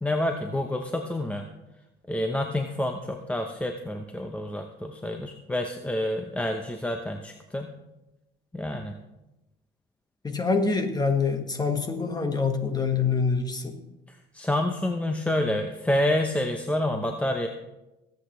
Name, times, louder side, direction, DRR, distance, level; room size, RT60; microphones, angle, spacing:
voice 1, 0.0-1.4 2.1-7.7 8.5-9.0 14.1-17.5, left 1 dB, 10° left, 4 dB, 0.8 m, -28 dB
voice 2, 10.2-13.8, left 4 dB, 25° left, 6 dB, 1.5 m, -25 dB
22.0 x 8.3 x 3.2 m, 0.99 s
cardioid pair, 110°, 17 cm